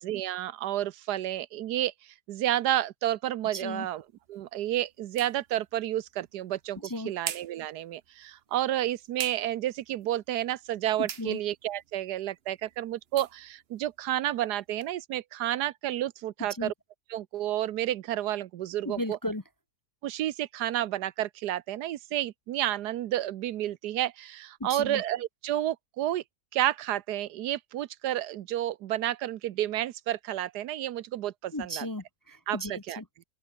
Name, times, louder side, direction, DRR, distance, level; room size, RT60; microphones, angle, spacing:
voice 1, 0.0-1.9 2.3-4.0 4.3-16.7 17.1-19.2 20.0-26.2 26.5-31.9 32.5-33.0, right 13 dB, 85° right, 1.3 m, -31 dB
sound 1, 3.4-14.9, right 8 dB, 45° right, 1.0 m, -46 dB
voice 2, 3.5-3.9 6.8-7.1 11.0-11.4 16.6-16.7 18.8-19.4 24.6-25.0 31.5-33.2, left 1 dB, 20° left, 0.7 m, -35 dB
open air
omnidirectional pair, 1.7 m